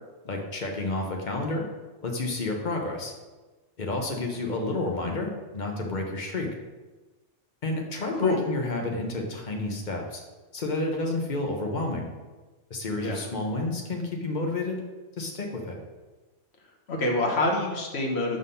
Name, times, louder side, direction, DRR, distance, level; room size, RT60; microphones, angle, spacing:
voice 1, 0.2-1.6 2.0-3.1 3.8-6.5 7.6-10.2 10.5-12.1 12.7-14.8 15.2-15.7, left 2 dB, 40° left, 1 dB, 1.0 m, -30 dB
voice 2, 16.9-18.4, left 2 dB, 60° left, 1 dB, 1.2 m, -26 dB
5.7 x 3.8 x 5.6 m, 1.2 s
omnidirectional pair, 1.3 m